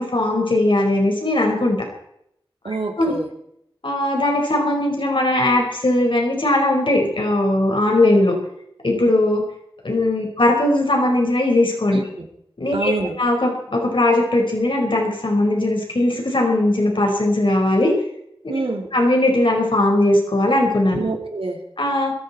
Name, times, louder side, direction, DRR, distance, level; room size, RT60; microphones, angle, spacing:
voice 1, 0.0-1.8 3.0-3.1 3.8-8.4 8.8-9.4 9.8-12.0 12.6-12.9 13.2-17.9 18.9-21.0 21.8-22.1, left 1 dB, 65° left, 1 dB, 4.8 m, -19 dB
voice 2, 2.6-3.3 11.9-12.3 12.7-13.2 18.5-18.9 20.9-21.6, right 3 dB, 85° right, 3 dB, 2.9 m, -26 dB
20.5 x 14.5 x 4.3 m, 0.73 s
wide cardioid pair, 50°, 9 cm